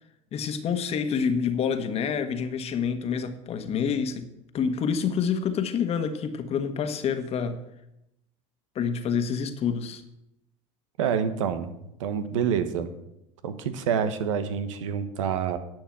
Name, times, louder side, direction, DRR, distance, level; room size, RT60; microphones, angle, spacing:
voice 1, 0.3-7.6 8.7-10.0, left 6 dB, 40° left, 1.4 m, -27 dB
voice 2, 11.0-11.7 12.0-12.9 13.4-15.6, right 7 dB, 85° right, 1.2 m, -27 dB
10.5 x 6.3 x 7.8 m
supercardioid pair, 105°, 16 cm